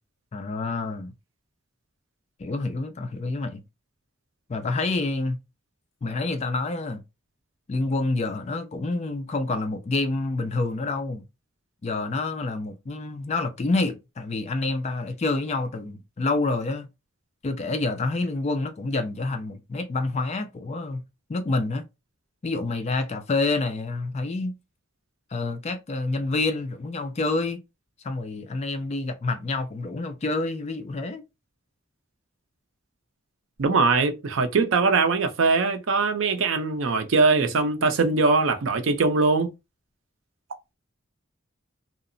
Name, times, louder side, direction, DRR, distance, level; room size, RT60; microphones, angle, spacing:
voice 1, 0.3-1.1 2.4-3.6 4.5-5.4 6.0-7.0 7.7-11.2 11.8-16.9 17.4-21.0 21.3-21.9 22.4-24.6 25.3-27.6 28.0-31.2, left 3 dB, 35° left, 0.3 m, -28 dB
voice 2, 33.6-39.5, right 4 dB, 70° right, 0.5 m, -21 dB
2.8 x 2.0 x 2.5 m
head